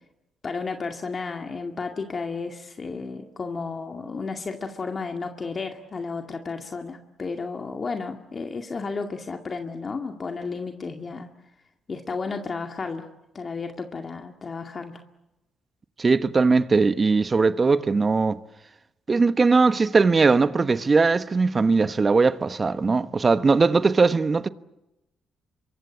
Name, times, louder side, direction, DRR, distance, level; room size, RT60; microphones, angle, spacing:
voice 1, 0.4-11.3 11.9-13.1 13.3-15.0, left 4 dB, 40° left, 2.2 m, -33 dB
voice 2, 16.0-18.4 19.1-24.5, right 4 dB, 30° right, 1.2 m, -20 dB
26.5 x 23.5 x 8.5 m
cardioid pair, 90°, 0 cm